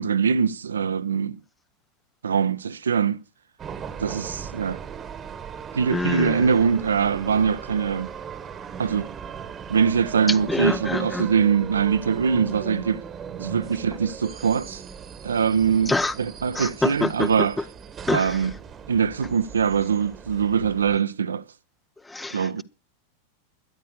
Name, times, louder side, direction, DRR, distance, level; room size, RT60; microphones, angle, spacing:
voice 1, 0.0-1.4 2.2-3.2 4.0-4.8 5.7-8.1 8.8-9.1 9.7-13.0 13.4-14.8 15.2-17.6 18.1-18.5 18.9-21.4 22.3-22.6, right 6 dB, 70° right, 0.6 m, -23 dB
sound 1, 3.6-21.0, right 7 dB, 25° right, 1.2 m, -38 dB
voice 2, 5.9-6.5 10.5-11.3 15.9-16.1 16.5-17.3 18.1-18.4 22.1-22.6, left 2 dB, 10° left, 0.7 m, -26 dB
12.5 x 11.0 x 6.4 m
figure-of-eight pair, 90°, 0 cm